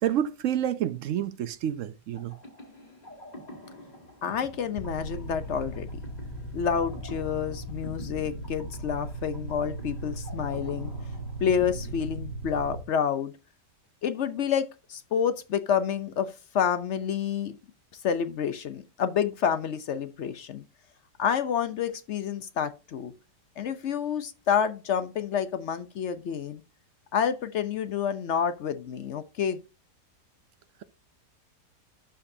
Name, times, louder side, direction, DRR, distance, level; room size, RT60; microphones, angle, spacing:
voice 1, 0.0-2.4, right 10 dB, 70° right, 0.7 m, -29 dB
sound 1, 2.1-12.8, left 1 dB, 25° left, 2.6 m, -47 dB
voice 2, 4.2-5.9 6.5-10.9 11.4-13.3 14.0-17.6 18.0-20.6 21.2-23.1 23.6-26.6 27.1-29.6, left 8 dB, 65° left, 0.7 m, -28 dB
sound 2, 4.8-12.8, right 2 dB, 45° right, 1.2 m, -38 dB
12.0 x 5.1 x 2.6 m
omnidirectional pair, 1.8 m